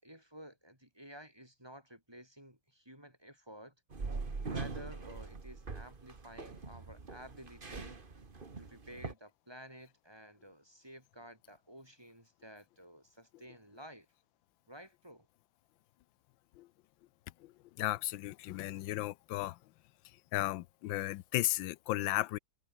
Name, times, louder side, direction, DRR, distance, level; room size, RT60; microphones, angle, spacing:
voice 1, 0.0-3.7 4.5-8.0 8.6-14.1 14.7-15.3, equal, 10° right, 6.3 m, -53 dB
sound 1, 3.9-9.1, right 4 dB, 30° right, 1.9 m, -42 dB
voice 2, 17.8-19.6 20.3-22.4, left 16 dB, 85° left, 1.3 m, -34 dB
omnidirectional pair, 2.0 m